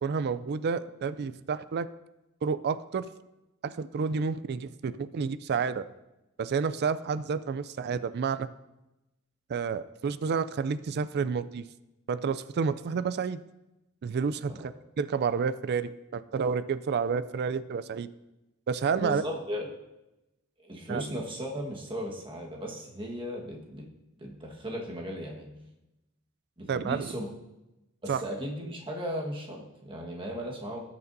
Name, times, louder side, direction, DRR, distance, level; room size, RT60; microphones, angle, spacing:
voice 1, 0.0-1.9 2.4-3.0 3.6-5.8 6.4-8.5 9.5-11.6 12.1-13.4 14.0-18.1 18.7-19.2 20.9-21.0 26.7-27.1 28.1-28.2, right 5 dB, 50° right, 15 dB, 0.4 m, -30 dB
voice 2, 19.0-19.7 20.6-23.8 24.2-25.5 26.6-27.3 28.0-30.8, equal, 25° right, -1 dB, 1.5 m, -36 dB
17.0 x 6.9 x 2.7 m, 0.95 s
head